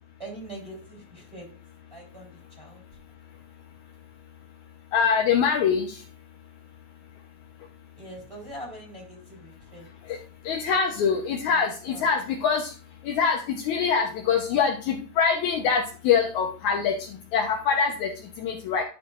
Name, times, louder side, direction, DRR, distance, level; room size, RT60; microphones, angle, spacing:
voice 1, 0.2-1.5 1.9-2.8 8.0-9.9 10.7-10.8 11.5-12.1, right 1 dB, 10° right, -2 dB, 3.3 m, -43 dB
voice 2, 4.9-6.1 10.0-10.2 10.4-18.8, left 6 dB, 70° left, 2 dB, 2.1 m, -24 dB
11.0 x 6.8 x 2.4 m, 0.37 s
omnidirectional pair, 3.7 m